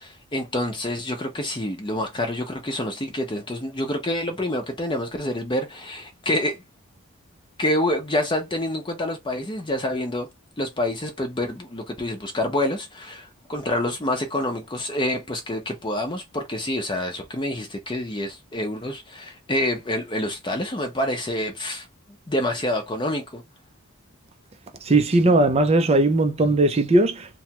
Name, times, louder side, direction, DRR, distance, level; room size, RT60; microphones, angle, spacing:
voice 1, 0.0-6.6 7.6-10.3 10.6-21.9 22.3-23.4, left 1 dB, 20° left, 0.7 m, -27 dB
voice 2, 24.8-27.4, right 2 dB, 30° right, 0.4 m, -19 dB
3.1 x 2.2 x 2.9 m
head